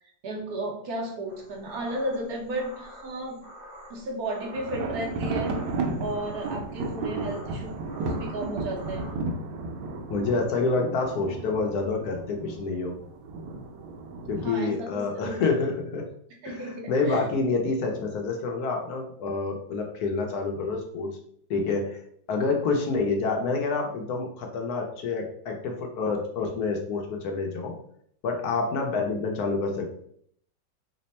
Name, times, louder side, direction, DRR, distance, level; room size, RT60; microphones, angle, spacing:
voice 1, 0.2-3.4 3.9-5.5 6.0-7.7 8.0-9.0 14.4-15.4 16.4-17.2, right 1 dB, 65° right, 0 dB, 1.1 m, -33 dB
sound 1, 1.3-9.1, equal, 25° left, 0.6 m, -48 dB
sound 2, 4.5-14.5, right 3 dB, 80° right, 1.3 m, -33 dB
voice 2, 10.1-13.0 14.3-16.0 16.4-21.1 21.5-22.0 22.3-27.7 28.2-30.0, left 4 dB, 70° left, 2 dB, 1.1 m, -28 dB
3.3 x 2.1 x 4.1 m, 0.65 s
omnidirectional pair, 1.8 m